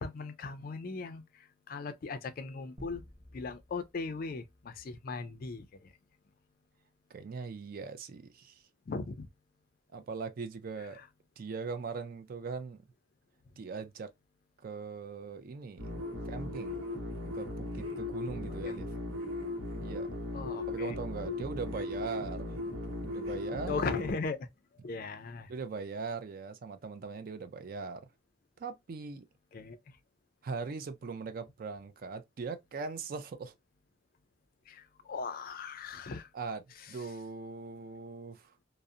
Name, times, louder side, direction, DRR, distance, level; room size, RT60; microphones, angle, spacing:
voice 1, 0.0-3.0 3.3-5.9 8.9-9.3 18.7-18.8 20.3-21.0 23.7-24.5 24.8-25.5 29.5-29.8 34.7-36.3, left 4 dB, 45° left, 0.4 m, -38 dB
sound 1, 2.8-5.6, equal, 20° right, 0.7 m, -54 dB
voice 2, 7.1-8.6 9.9-11.0 11.4-12.8 13.6-14.1 14.6-16.0 16.2-16.8 17.3-18.9 19.8-20.1 20.7-22.5 23.1-23.9 25.5-28.1 28.6-29.3 30.4-33.5 36.3-38.5, right 4 dB, 45° right, 0.3 m, -40 dB
sound 2, 15.8-24.1, left 2 dB, 70° right, 0.9 m, -37 dB
2.6 x 2.0 x 2.4 m
head